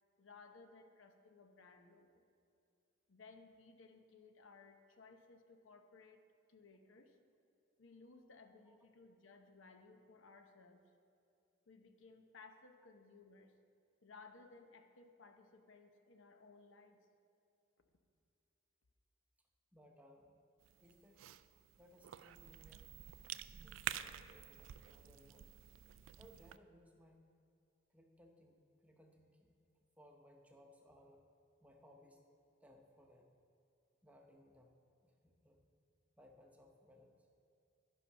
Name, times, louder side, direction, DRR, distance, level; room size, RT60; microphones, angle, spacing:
voice 1, 0.2-2.2 3.1-6.2 6.5-7.2 7.8-10.8 11.7-13.6 14.0-17.0, left 4 dB, 75° left, 6 dB, 0.8 m, -60 dB
voice 2, 19.7-20.3 20.8-21.2 21.8-23.0 23.6-25.5 26.2-27.2 27.9-29.6 30.0-31.3 31.6-32.2 32.6-33.3 34.0-34.7 35.0-35.6 36.2-37.3, left 1 dB, 5° right, 2 dB, 0.8 m, -64 dB
Cough / Chewing mastication, 20.6-26.6, right 11 dB, 75° right, 0.3 m, -49 dB
11.5 x 5.7 x 5.6 m, 2.5 s
head